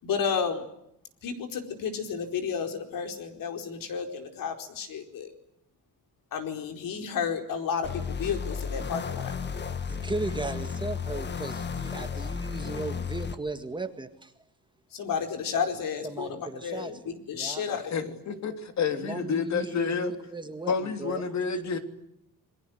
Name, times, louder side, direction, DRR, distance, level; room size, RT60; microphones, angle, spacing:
voice 1, 0.0-0.6 1.2-5.3 6.3-9.3 14.9-17.0 17.3-18.2, left 6 dB, 70° left, 5 dB, 4.6 m, -32 dB
sound 1, 7.8-13.4, left 6 dB, 30° left, 1.6 m, -33 dB
voice 2, 9.7-14.3 16.0-17.6 18.9-21.2, right 3 dB, 15° right, 7 dB, 1.8 m, -37 dB
voice 3, 17.7-20.1 20.7-21.8, left 5 dB, 50° left, 7 dB, 3.2 m, -29 dB
28.5 x 22.5 x 8.0 m, 0.78 s
cardioid pair, 155°, 35 cm